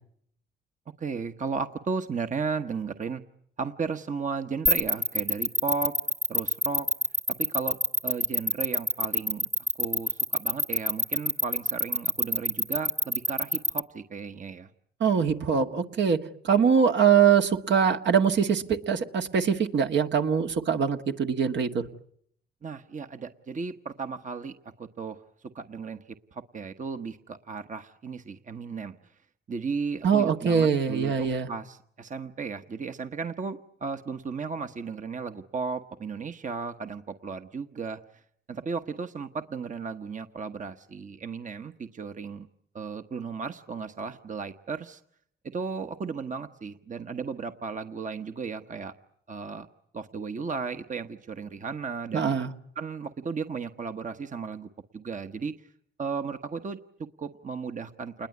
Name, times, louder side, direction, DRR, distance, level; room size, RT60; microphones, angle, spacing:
voice 1, 1.0-3.2 3.6-6.0 6.3-6.9 7.4-9.5 9.8-14.7 22.6-25.2 25.5-26.0 26.3-28.9 29.5-38.0 38.5-42.5 42.7-45.0 45.5-48.9 49.3-49.7 49.9-52.4 52.8-55.5 56.0-58.3, right 5 dB, 40° right, 8 dB, 1.2 m, -35 dB
sound 1, 4.7-13.8, left 1 dB, 15° right, 1.3 m, -25 dB
voice 2, 15.0-16.2 16.4-21.8 30.0-31.5 52.1-52.5, right 7 dB, 65° right, 5 dB, 1.7 m, -23 dB
28.0 x 21.0 x 9.7 m, 0.71 s
cardioid pair, 75°, 20 cm